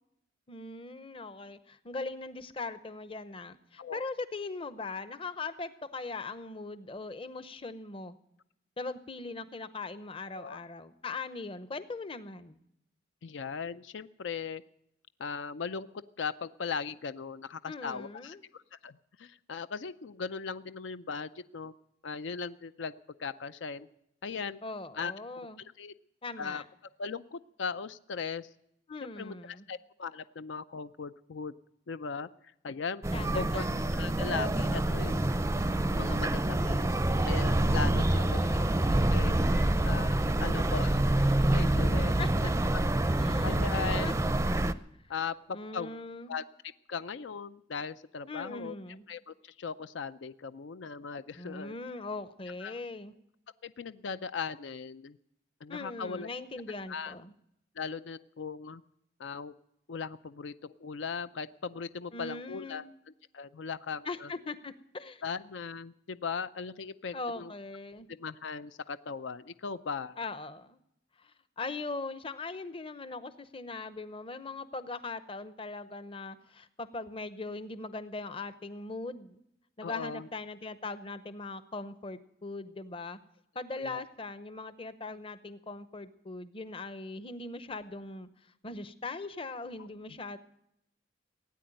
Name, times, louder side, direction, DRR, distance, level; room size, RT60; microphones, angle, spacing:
voice 1, 0.5-8.1 8.8-12.6 17.7-18.4 24.6-25.6 26.2-26.6 28.9-29.7 33.1-33.8 38.0-39.0 42.2-42.3 43.1-44.2 45.5-46.3 48.3-49.0 51.4-53.1 55.7-57.3 62.1-62.9 64.0-65.2 67.1-68.1 70.2-70.8 71.2-79.4 79.8-83.2 83.5-90.4, left 3 dB, 30° left, 13 dB, 0.8 m, -40 dB
voice 2, 13.2-14.6 15.2-15.9 16.2-21.7 22.0-22.9 23.2-23.9 24.2-24.6 24.9-25.1 25.6-25.9 26.4-26.6 27.0-28.5 29.2-31.5 31.9-32.3 32.6-33.0 33.3-33.6 33.9-35.2 35.9-38.4 38.9-42.1 43.4-44.1 45.1-46.0 46.3-46.4 46.9-48.7 49.1-51.7 52.6-52.8 53.6-55.2 55.6-56.3 56.9-57.1 57.8-58.8 59.2-59.5 59.9-62.8 63.3-64.3 65.2-67.5 68.1-70.2 79.8-80.3 83.8-84.0, left 5 dB, 75° left, 13 dB, 0.5 m, -38 dB
sound 1, 33.0-44.7, right 1 dB, 15° right, 0.5 m, -27 dB
17.0 x 9.4 x 8.9 m, 0.79 s
head